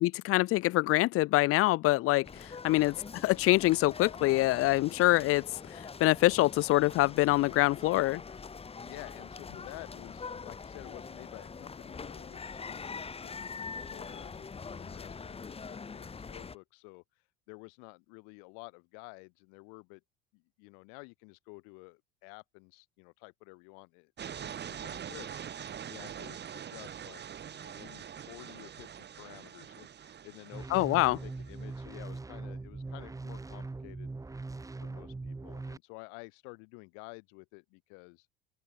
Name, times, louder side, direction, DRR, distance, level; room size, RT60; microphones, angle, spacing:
voice 1, 0.0-2.3 2.6-2.9 3.2-5.4 6.0-8.2 30.7-31.2, left 18 dB, 45° left, 0.5 m, -25 dB
sound 1, 2.2-16.5, left 5 dB, 20° left, 1.0 m, -44 dB
voice 2, 8.8-17.0 17.5-20.0 20.3-25.4 25.8-34.1 34.8-38.3, left 40 dB or more, 70° left, 4.5 m, -51 dB
sound 2, 24.2-31.8, right 9 dB, 35° right, 1.3 m, -44 dB
sound 3, 30.5-35.8, right 3 dB, 10° right, 0.9 m, -41 dB
open air
hypercardioid pair, 75°, 32 cm